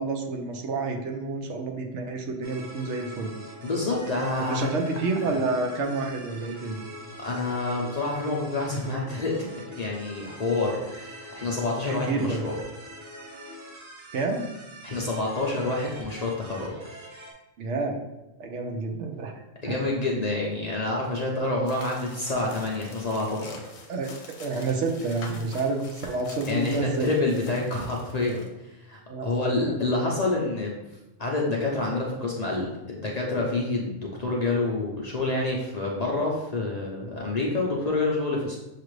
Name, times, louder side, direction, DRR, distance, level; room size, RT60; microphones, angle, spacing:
voice 1, 0.0-3.3 4.4-6.8 11.8-12.4 14.1-14.5 17.6-18.0 18.4-19.8 23.9-24.1 24.4-27.1 29.1-29.3 29.7-29.8, right 3 dB, 75° right, 2 dB, 0.9 m, -29 dB
sound 1, 2.4-17.3, equal, 30° right, 0.7 m, -44 dB
voice 2, 3.6-4.7 7.2-12.5 14.8-16.7 19.6-23.7 26.5-28.5 28.8-30.8 31.2-38.6, left 2 dB, 45° left, -2 dB, 0.6 m, -28 dB
sound 2, 21.7-28.5, left 3 dB, 70° left, 1.0 m, -46 dB
6.5 x 2.5 x 3.1 m, 0.97 s
omnidirectional pair, 1.2 m